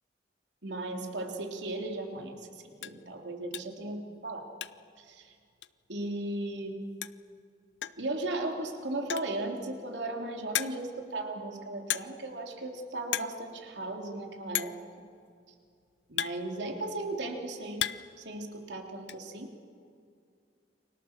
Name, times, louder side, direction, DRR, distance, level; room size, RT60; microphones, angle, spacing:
voice 1, 0.6-2.5 2.8-4.5 5.0-5.3 5.9-6.8 8.0-14.8 16.1-17.9 18.2-19.5, right 2 dB, 80° right, 2 dB, 3.4 m, -36 dB
sound 1, 1.8-2.0 2.4-2.5 2.8-3.0 3.5-3.8 4.1-5.0 5.2-5.3 5.6-5.7 6.7-6.8 7.0-7.3 7.8-8.1 8.9-9.4 10.0-10.1 10.5-11.0 11.9-12.3 12.6-12.8 13.0-13.4 13.7-13.8 14.5-14.9 15.7-17.0 17.4-18.2 18.5-19.2, left 11 dB, 75° left, 0.7 m, -35 dB
30.0 x 25.0 x 7.4 m, 2.3 s
head